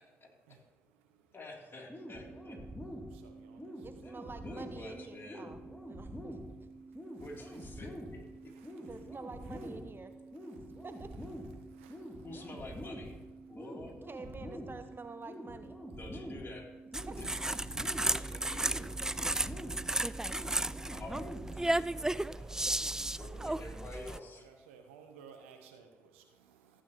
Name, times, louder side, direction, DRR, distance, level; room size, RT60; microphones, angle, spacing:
voice 1, 0.2-1.4 2.6-4.4 5.1-5.3 5.8-7.9 8.3-9.1 9.4-9.7 10.0-12.8 13.4-13.7 15.8-16.0 17.7-20.0 21.7-23.6 24.3-26.8, right 6 dB, 85° right, 1.0 m, -62 dB
voice 2, 1.3-2.6 4.0-5.4 7.2-8.2 12.2-13.1 13.5-13.9 15.9-16.7 17.2-17.3 17.7-18.8 20.4-21.6 22.4-22.8 23.2-24.5, left 2 dB, 35° left, 3.4 m, -48 dB
sound 1, 1.9-21.9, right 1 dB, 10° left, 2.9 m, -46 dB
voice 3, 3.8-5.6 5.9-6.4 8.9-10.1 10.8-11.1 13.8-15.8 17.1-17.2, right 4 dB, 35° right, 0.8 m, -47 dB
sound 2, 16.9-24.2, right 1 dB, 10° right, 0.3 m, -34 dB
15.0 x 8.7 x 3.1 m
hypercardioid pair, 40°, 7 cm